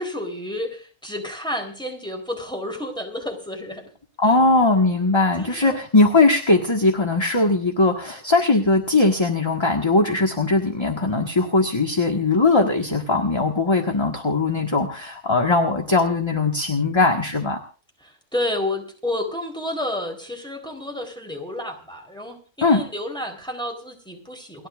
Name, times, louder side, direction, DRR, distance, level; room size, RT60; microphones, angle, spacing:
voice 1, 0.0-3.9 5.4-5.8 18.0-24.7, left 1 dB, 5° left, 3 dB, 3.9 m, -30 dB
voice 2, 4.2-17.6 22.6-22.8, left 3 dB, 20° left, 3 dB, 1.6 m, -20 dB
30.0 x 10.5 x 2.5 m, 0.37 s
omnidirectional pair, 1.5 m